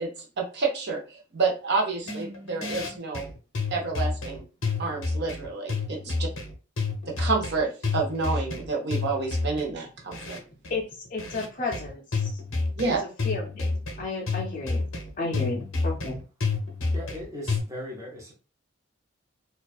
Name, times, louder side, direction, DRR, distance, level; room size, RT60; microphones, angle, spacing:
voice 1, 0.0-3.3 3.7-4.5 4.8-6.3 7.1-10.4 12.8-13.0, right 4 dB, 55° right, 0 dB, 0.7 m, -29 dB
sound 1, 2.0-17.6, left 3 dB, 75° left, 0.7 m, -30 dB
voice 2, 10.7-12.4 13.2-14.9 15.2-16.2, left 3 dB, 40° left, -3 dB, 0.4 m, -33 dB
voice 3, 16.9-18.3, left 1 dB, 15° right, -4 dB, 0.5 m, -38 dB
2.3 x 2.2 x 2.4 m, 0.35 s
head